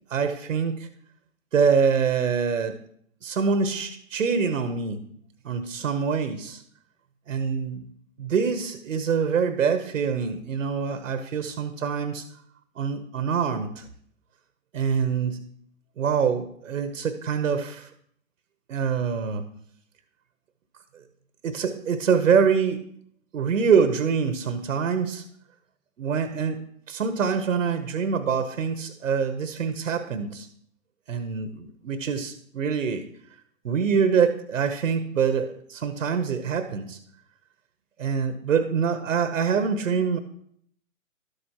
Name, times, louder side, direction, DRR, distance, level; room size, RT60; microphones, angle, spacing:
voice 1, 0.1-0.9 1.5-2.8 3.2-5.1 5.4-6.6 7.3-7.8 8.2-12.2 12.8-13.8 14.7-15.4 16.0-17.9 18.7-19.5 21.4-22.8 23.3-25.2 26.0-30.5 31.1-33.0 33.6-37.0 38.0-40.2, right 6 dB, 75° right, 9 dB, 1.0 m, -25 dB
12.0 x 8.0 x 2.9 m, 0.66 s
hypercardioid pair, 140°, 40 cm